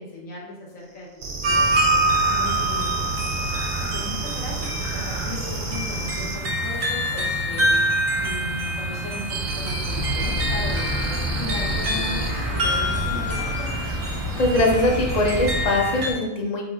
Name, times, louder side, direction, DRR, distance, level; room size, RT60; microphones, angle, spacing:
voice 1, 0.0-13.8, left 2 dB, 85° left, -3 dB, 1.6 m, -37 dB
sound 1, 1.2-6.4 9.3-12.3, right 3 dB, 55° right, 0.7 m, -32 dB
sound 2, 1.4-16.1, right 1 dB, 80° right, 1.4 m, -25 dB
sound 3, 9.9-15.7, left 1 dB, 30° right, 0.4 m, -30 dB
voice 2, 14.4-16.7, left 2 dB, 40° left, 1 dB, 0.7 m, -21 dB
5.3 x 2.6 x 3.8 m, 0.93 s
omnidirectional pair, 1.3 m